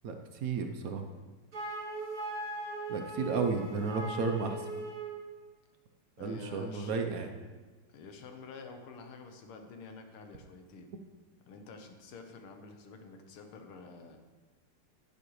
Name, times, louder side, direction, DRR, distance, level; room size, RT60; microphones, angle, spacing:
voice 1, 0.0-1.0 2.9-4.7 6.2-7.3, right 4 dB, 65° right, 5 dB, 0.8 m, -33 dB
Wind instrument woodwind instrument, 1.5-5.2, right 2 dB, 45° right, 2.1 m, -39 dB
voice 2, 6.2-6.9 7.9-10.9 11.5-14.2, left 4 dB, 90° left, 5 dB, 1.9 m, -49 dB
11.0 x 10.0 x 3.1 m, 1.4 s
omnidirectional pair, 2.4 m